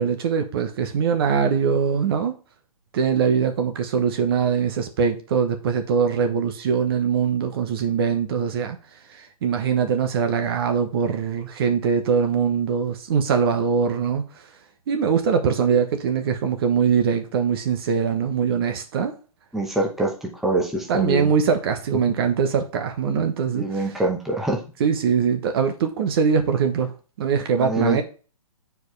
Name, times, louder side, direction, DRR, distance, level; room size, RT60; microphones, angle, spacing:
voice 1, 0.0-2.3 2.9-8.8 9.1-14.2 14.9-19.1 20.9-24.0 24.8-26.9 27.2-28.0, right 6 dB, 40° right, 6 dB, 1.0 m, -22 dB
voice 2, 19.5-20.1 20.4-21.3 23.5-24.6 27.6-28.0, right 2 dB, ahead, -2 dB, 1.0 m, -24 dB
7.9 x 4.7 x 3.2 m, 0.36 s
hypercardioid pair, 155°, 19 cm